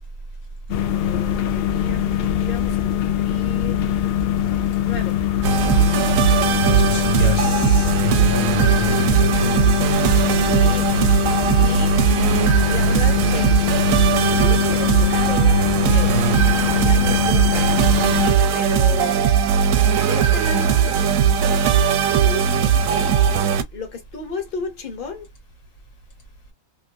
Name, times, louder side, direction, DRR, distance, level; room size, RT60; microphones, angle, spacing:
sound 1, 0.7-18.3, left 11 dB, 65° left, 0.6 m, -22 dB
voice 1, 0.9-4.0 4.8-5.2 10.4-11.1 11.6-13.5 14.3-16.2 16.7-17.7 18.5-19.2 20.0-21.0 21.9-25.3, left 4 dB, 45° left, 1.2 m, -34 dB
sound 2, 5.4-23.6, right 7 dB, 90° right, 1.0 m, -18 dB
voice 2, 6.3-9.6, left 3 dB, 85° left, 1.6 m, -30 dB
3.2 x 2.9 x 2.2 m
omnidirectional pair, 1.4 m